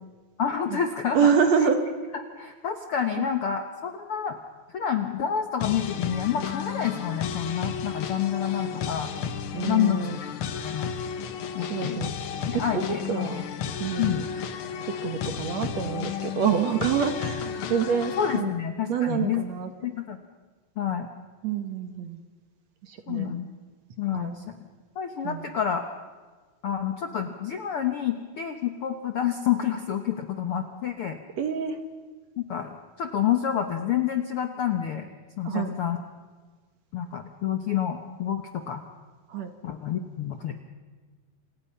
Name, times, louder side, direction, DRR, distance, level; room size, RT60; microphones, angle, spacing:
voice 1, 0.4-1.3 2.4-4.4 4.7-9.1 9.6-10.3 10.6-10.9 11.5-12.0 12.5-13.4 14.0-14.3 18.2-19.4 19.8-20.2 20.8-21.1 23.1-23.5 24.0-24.6 24.9-25.8 26.6-31.2 32.4-32.7 33.0-35.1 35.4-36.0 36.9-38.8 39.6-40.5, left 9 dB, 65° left, 6 dB, 1.4 m, -28 dB
voice 2, 1.1-1.8 3.2-3.3 9.5-10.2 11.6-12.1 12.5-13.4 13.8-14.2 14.9-18.5 18.9-19.7 21.4-22.2 22.8-23.3 24.1-24.4 25.2-25.5 31.4-31.8 35.4-35.7 39.3-39.5, right 7 dB, 60° right, 7 dB, 2.1 m, -27 dB
sound 1, 5.6-18.4, left 7 dB, 85° left, 1.1 m, -33 dB
28.0 x 27.5 x 5.7 m, 1.4 s
omnidirectional pair, 4.1 m